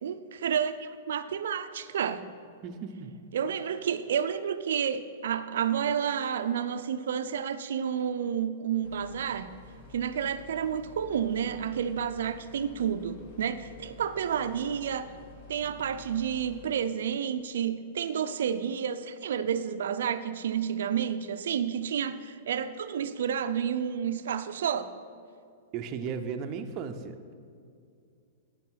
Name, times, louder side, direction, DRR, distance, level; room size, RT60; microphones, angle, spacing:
voice 1, 0.0-2.2 3.3-9.5 9.9-15.1 15.5-24.9, right 8 dB, 75° right, 11 dB, 0.6 m, -30 dB
voice 2, 2.6-3.2 25.7-27.3, right 6 dB, 40° right, 6 dB, 0.8 m, -36 dB
sound 1, 8.8-16.7, left 6 dB, 60° left, 1.6 m, -51 dB
9.8 x 7.5 x 5.7 m, 2.4 s
hypercardioid pair, 125°, 0 cm